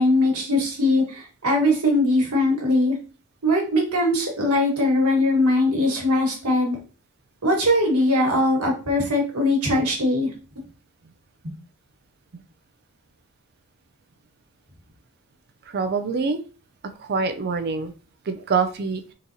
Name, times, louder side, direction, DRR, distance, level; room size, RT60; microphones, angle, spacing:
voice 1, 0.0-2.9 3.4-6.8 7.4-10.3 11.4-11.5, left 1 dB, 85° right, -1 dB, 1.4 m, -21 dB
voice 2, 15.7-16.4 17.0-17.9 18.3-19.0, right 5 dB, 45° right, 8 dB, 0.3 m, -25 dB
3.8 x 2.9 x 2.6 m, 0.36 s
head